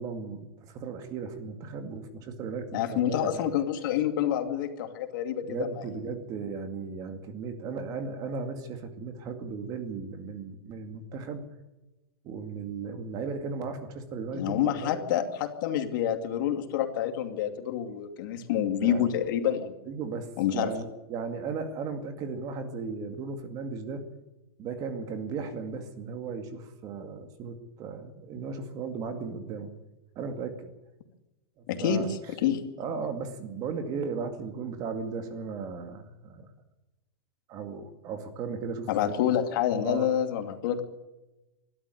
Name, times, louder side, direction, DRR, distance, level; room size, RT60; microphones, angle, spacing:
voice 1, 0.0-3.5 5.4-11.4 12.2-15.0 18.8-19.1 19.9-24.0 24.6-29.7 30.2-30.7 31.6-32.2 32.8-36.5 37.5-39.2 39.8-40.0, right 5 dB, 30° right, 7 dB, 2.2 m, -36 dB
voice 2, 2.7-5.8 14.3-19.7 20.4-20.7 31.7-32.1 32.4-32.6 38.9-40.8, left 10 dB, 55° left, 6 dB, 2.5 m, -28 dB
22.0 x 12.5 x 9.8 m, 1.0 s
supercardioid pair, 160°, 13 cm